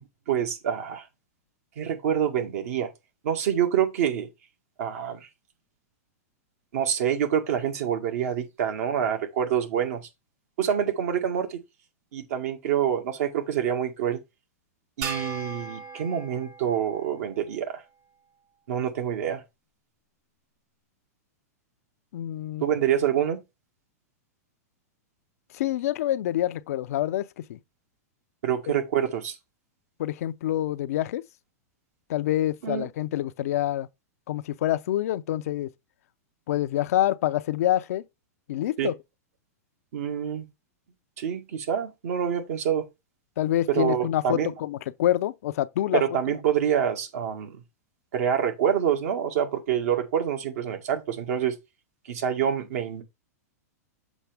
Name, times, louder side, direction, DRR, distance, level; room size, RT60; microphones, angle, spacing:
voice 1, 0.3-1.1 1.8-2.9 3.2-4.3 4.8-5.3 6.7-10.1 10.6-11.6 12.1-14.2 15.0-17.8 18.7-19.4 22.6-23.4 28.4-29.4 32.6-32.9 38.8-38.9 39.9-40.5 41.2-42.9 43.7-44.5 45.9-47.6 48.1-51.5 52.1-53.0, right 9 dB, 65° right, 1.8 m, -26 dB
sound 1, 15.0-17.6, right 5 dB, 35° right, 1.3 m, -37 dB
voice 2, 22.1-22.6 25.5-27.6 30.0-31.2 32.1-33.9 34.3-35.7 36.5-38.0 38.5-38.9 43.4-46.0, left 13 dB, 65° left, 0.5 m, -26 dB
7.2 x 5.2 x 3.4 m
hypercardioid pair, 135°, 9 cm